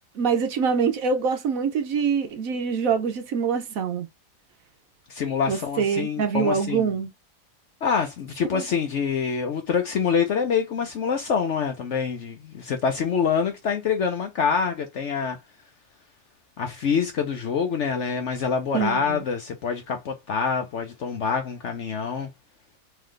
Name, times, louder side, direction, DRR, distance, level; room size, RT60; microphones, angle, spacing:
voice 1, 0.2-4.1 5.5-7.1 8.5-8.7 18.7-19.2, right 6 dB, 65° right, 1.0 m, -25 dB
voice 2, 5.1-7.0 7.8-15.4 16.6-22.3, left 6 dB, 60° left, 0.8 m, -26 dB
3.7 x 3.1 x 3.2 m
omnidirectional pair, 1.7 m